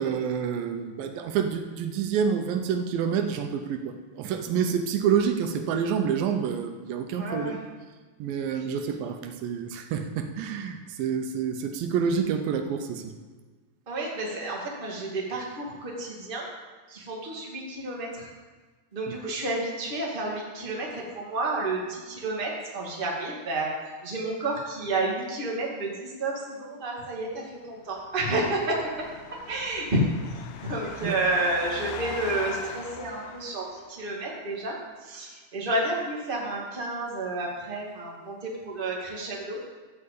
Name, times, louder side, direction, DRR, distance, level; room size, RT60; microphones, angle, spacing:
voice 1, 0.0-7.7 8.2-13.1 31.0-31.2, right 7 dB, 80° right, 6 dB, 2.6 m, -28 dB
voice 2, 7.2-7.6 13.9-16.5 16.9-18.3 18.9-23.7 24.0-30.1 30.6-39.6, right 2 dB, 20° right, -3 dB, 1.8 m, -30 dB
sound 1, 27.8-34.1, left 7 dB, 80° left, 2.4 m, -41 dB
14.0 x 4.9 x 8.4 m, 1.3 s
omnidirectional pair, 4.1 m